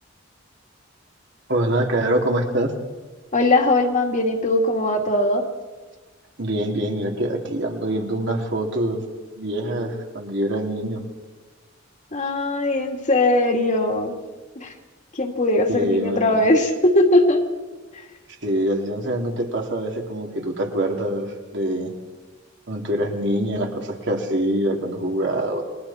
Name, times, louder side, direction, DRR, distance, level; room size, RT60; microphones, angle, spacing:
voice 1, 1.5-2.7 6.4-9.0 9.4-11.0 15.7-16.4 18.4-21.9 22.7-25.6, right 1 dB, 60° right, 1 dB, 3.1 m, -24 dB
voice 2, 3.3-5.4 12.1-14.2 14.6-14.7 15.1-17.4, left 2 dB, 40° left, 2 dB, 2.4 m, -20 dB
29.5 x 22.0 x 4.4 m, 1.3 s
head